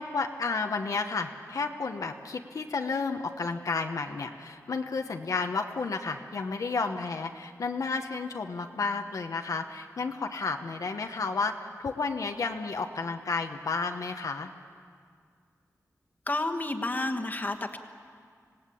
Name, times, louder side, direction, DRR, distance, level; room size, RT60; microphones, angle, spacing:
voice 1, 0.0-14.5, left 4 dB, 70° left, 4 dB, 1.1 m, -32 dB
voice 2, 16.3-17.8, left 2 dB, 30° left, 4 dB, 1.4 m, -30 dB
26.0 x 18.0 x 8.5 m, 2.1 s
wide cardioid pair, 130°, 6 cm